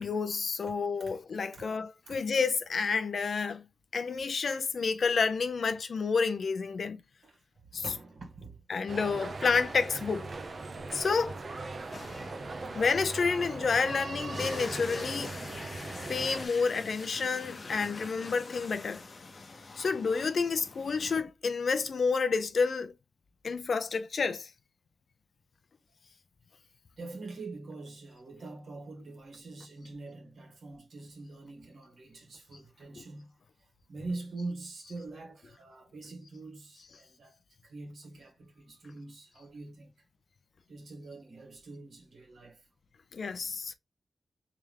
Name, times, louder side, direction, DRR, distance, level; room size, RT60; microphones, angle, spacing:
voice 1, 0.0-3.6 3.9-7.0 7.7-7.8 8.7-10.3 10.9-11.4 12.7-15.3 16.1-19.0 19.8-22.9 23.4-24.5 33.0-33.1 43.1-43.7, left 5 dB, 70° left, 0.5 m, -29 dB
voice 2, 7.7-8.6 10.6-11.1 11.7-12.8 27.0-39.9 40.7-42.7, right 3 dB, 80° right, 1.7 m, -45 dB
sound 1, 8.9-16.5, right 3 dB, 55° right, 0.7 m, -39 dB
sound 2, 11.9-21.2, left 3 dB, 50° left, 0.8 m, -45 dB
3.3 x 3.3 x 3.4 m
wide cardioid pair, 85°, 0 cm